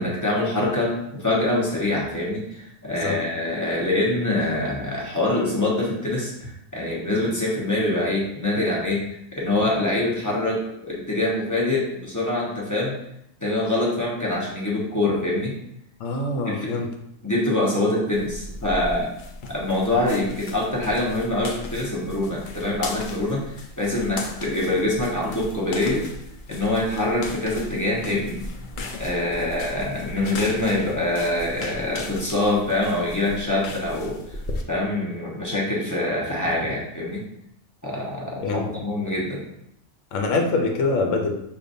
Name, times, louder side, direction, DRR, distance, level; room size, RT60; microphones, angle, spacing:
voice 1, 0.0-12.9 13.4-15.6 16.5-16.9 17.2-19.1 19.5-26.1 26.5-28.4 29.0-34.2 34.7-37.2 37.8-39.4, left 2 dB, 15° left, -5 dB, 0.8 m, -25 dB
voice 2, 16.0-16.9 38.4-38.7 40.1-41.3, left 3 dB, 75° left, 2 dB, 1.0 m, -24 dB
sound 1, 18.1-34.6, left 2 dB, 55° left, 0.6 m, -37 dB
6.6 x 2.6 x 2.6 m, 0.79 s
omnidirectional pair, 1.3 m